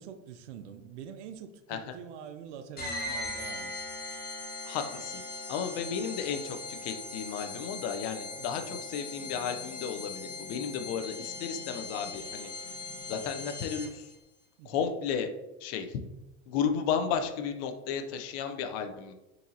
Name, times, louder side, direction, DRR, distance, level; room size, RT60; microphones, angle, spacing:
voice 1, 0.0-3.7 8.3-8.6 14.6-14.8, right 8 dB, 85° right, 9 dB, 0.5 m, -45 dB
sound 1, 2.8-14.1, left 3 dB, 25° left, 0.9 m, -40 dB
voice 2, 4.6-5.2 5.5-12.8 13.1-14.1 14.6-15.3 15.6-16.0 16.5-19.1, left 7 dB, 60° left, 7 dB, 0.6 m, -33 dB
sound 2, 9.2-12.3 12.6-13.6 14.2-14.3, left 4 dB, 80° left, 1.0 m, -53 dB
3.9 x 2.7 x 2.7 m, 0.95 s
hypercardioid pair, 90°, 35 cm